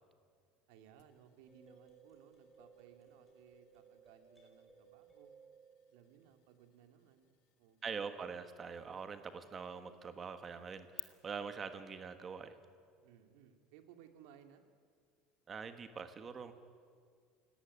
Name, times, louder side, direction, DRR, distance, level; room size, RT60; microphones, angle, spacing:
voice 1, 0.7-5.3 5.9-8.0 13.0-14.6, right 9 dB, 75° right, 7 dB, 2.5 m, -62 dB
sound 1, 1.0-11.0, left 22 dB, 55° left, 1.2 m, -58 dB
sound 2, 1.5-6.6, right 5 dB, 5° left, 5.2 m, -62 dB
voice 2, 7.8-12.5 15.5-16.5, right 5 dB, 20° right, 10 dB, 1.4 m, -44 dB
28.5 x 18.0 x 9.8 m, 2.1 s
cardioid pair, 180°, 0 cm